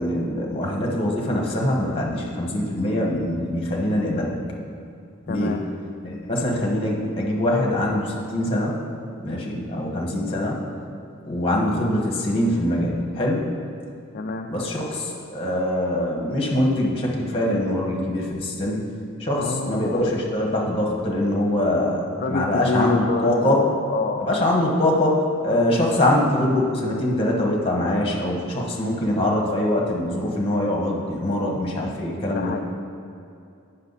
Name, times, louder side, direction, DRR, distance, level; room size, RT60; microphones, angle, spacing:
voice 1, 0.0-4.3 5.3-5.6 6.0-8.8 9.2-10.6 11.2-13.4 14.5-18.8 19.2-23.6 24.2-32.6, left 1 dB, 25° left, -2 dB, 1.3 m, -23 dB
voice 2, 5.3-5.6 14.1-14.6 19.4-20.1 22.2-24.5 32.3-32.6, left 4 dB, 45° left, 4 dB, 0.3 m, -28 dB
8.7 x 5.7 x 4.1 m, 2.5 s
head